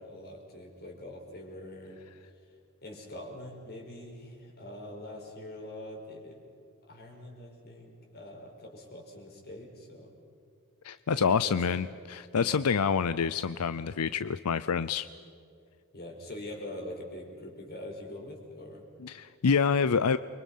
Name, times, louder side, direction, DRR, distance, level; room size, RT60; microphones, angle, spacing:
voice 1, 0.0-2.0 2.2-2.3 2.8-6.4 6.9-10.1 11.1-11.8 12.4-12.6 15.9-18.8, left 1 dB, 45° left, 1 dB, 5.3 m, -44 dB
voice 2, 10.8-15.1 19.0-20.2, left 6 dB, 85° left, 14 dB, 0.6 m, -27 dB
29.5 x 24.0 x 5.7 m, 2.3 s
head